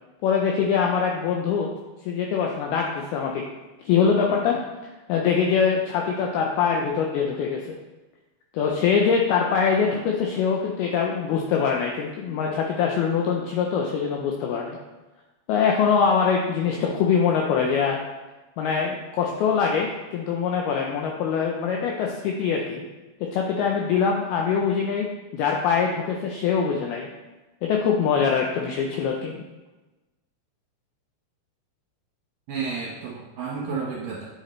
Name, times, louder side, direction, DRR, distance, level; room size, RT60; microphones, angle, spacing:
voice 1, 0.2-1.7 2.0-3.4 3.9-4.6 4.8-7.6 8.5-14.8 15.5-18.0 18.6-22.8 23.3-25.1 25.3-27.1 27.6-29.4, left 6 dB, 85° left, 0 dB, 2.2 m, -23 dB
voice 2, 32.5-34.3, right 5 dB, 70° right, -4 dB, 2.2 m, -31 dB
9.2 x 6.5 x 3.2 m, 1.1 s
omnidirectional pair, 5.2 m